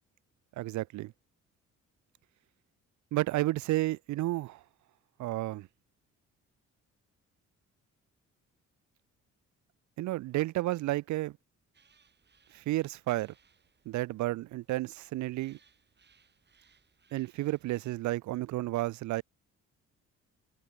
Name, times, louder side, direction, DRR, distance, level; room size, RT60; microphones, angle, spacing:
voice 1, 0.6-1.1 3.1-4.6 5.2-5.7 10.0-11.3 12.5-13.3 13.9-15.6 17.1-19.2, right 17 dB, 70° right, 0.5 m, -31 dB
sound 1, 11.7-18.0, right 6 dB, 35° right, 2.5 m, -68 dB
cardioid pair, 90°, 30 cm